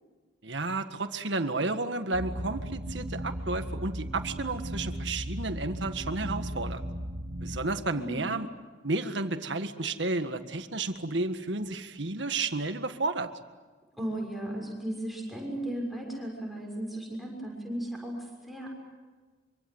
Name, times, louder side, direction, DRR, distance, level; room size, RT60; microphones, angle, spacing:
voice 1, 0.4-6.8 7.4-8.5 8.8-13.3, right 3 dB, 75° right, 8 dB, 1.7 m, -32 dB
sound 1, 2.1-7.6, equal, 50° right, 2.2 m, -36 dB
voice 2, 7.9-8.3 14.0-18.7, right 1 dB, ahead, -1 dB, 6.5 m, -35 dB
25.5 x 25.0 x 8.1 m, 1.4 s
head